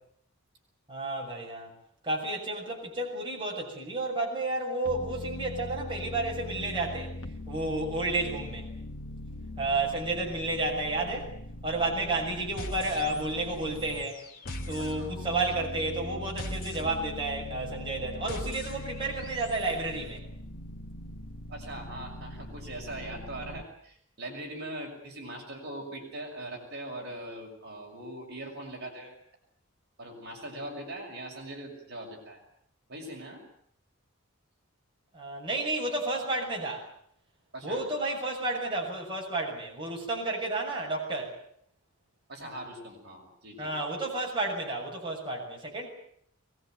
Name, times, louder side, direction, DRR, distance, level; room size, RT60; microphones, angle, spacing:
voice 1, 0.9-1.7 2.0-7.1 7.5-8.7 9.6-11.3 11.6-14.2 14.7-20.2 35.1-36.9 37.6-41.3 43.6-45.9, right 2 dB, 25° right, -2 dB, 6.9 m, -31 dB
sound 1, 4.9-14.0 14.4-23.6, left 1 dB, 65° left, 1.8 m, -41 dB
sound 2, 12.6-13.5 13.7-19.8, left 1 dB, 45° left, 3.2 m, -43 dB
voice 2, 14.8-15.1 21.5-29.1 30.0-32.4 32.9-33.4 37.5-37.8 42.3-43.7, right 1 dB, 50° right, 1 dB, 6.5 m, -41 dB
23.0 x 21.0 x 9.3 m, 0.67 s
head